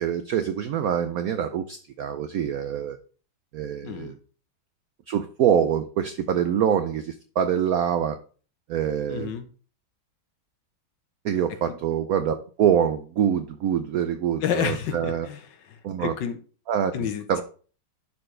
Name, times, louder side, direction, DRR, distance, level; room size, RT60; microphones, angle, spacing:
voice 1, 0.0-3.0 3.5-4.1 5.1-8.2 8.7-9.3 11.2-15.3 15.8-16.1 16.7-16.9 17.3-17.4, right 9 dB, 85° right, 9 dB, 0.8 m, -25 dB
voice 2, 3.8-4.2 9.1-9.5 11.6-11.7 14.4-16.4 16.9-17.4, left 8 dB, 65° left, 9 dB, 1.4 m, -30 dB
12.0 x 4.4 x 3.2 m, 0.39 s
omnidirectional pair, 2.2 m